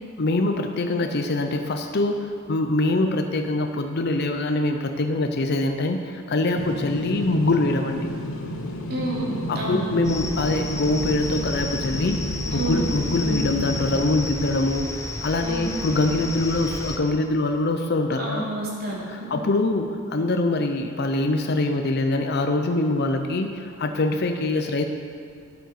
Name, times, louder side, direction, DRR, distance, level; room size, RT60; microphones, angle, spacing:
voice 1, 0.2-8.1 9.5-18.5 19.1-24.9, left 2 dB, 50° left, 5 dB, 0.6 m, -24 dB
sound 1, 6.6-14.0, left 1 dB, 85° left, 1.1 m, -31 dB
voice 2, 8.9-9.9 12.5-12.9 13.2-13.4 15.4-15.7 18.2-19.0, right 1 dB, 50° right, -4 dB, 2.6 m, -29 dB
sound 2, 10.0-17.0, left 2 dB, 15° left, 0.7 m, -32 dB
9.3 x 8.6 x 6.5 m, 2.4 s
head